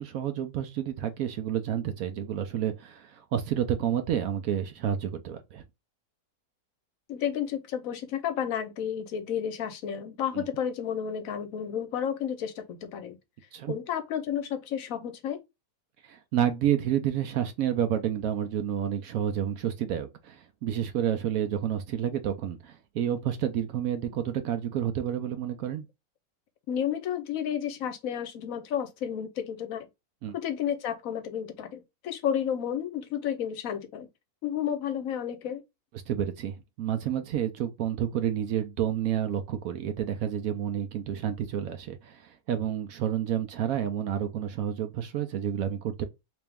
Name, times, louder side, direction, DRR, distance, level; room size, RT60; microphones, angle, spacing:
voice 1, 0.0-5.6 10.3-10.5 13.5-13.7 16.0-25.8 30.2-30.3 36.1-46.0, right 10 dB, 70° right, 1.0 m, -30 dB
voice 2, 7.1-13.2 13.7-15.4 26.7-29.9 30.3-34.1 34.4-35.6, left 9 dB, 65° left, 1.0 m, -31 dB
3.4 x 3.0 x 3.4 m
omnidirectional pair, 1.6 m